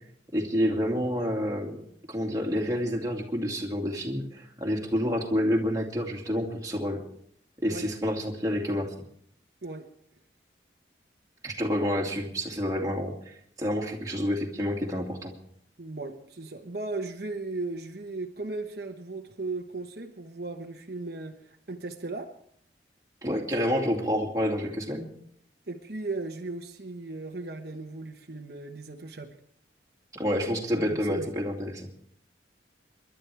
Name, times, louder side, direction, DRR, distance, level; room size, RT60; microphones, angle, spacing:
voice 1, 0.3-1.8 2.1-7.0 7.6-8.9 11.4-15.3 23.2-25.1 30.1-31.9, equal, 20° right, -2 dB, 2.4 m, -28 dB
voice 2, 15.8-22.3 25.7-29.3 30.7-31.3, right 3 dB, 55° right, 2 dB, 1.2 m, -36 dB
27.5 x 11.5 x 3.5 m, 0.65 s
head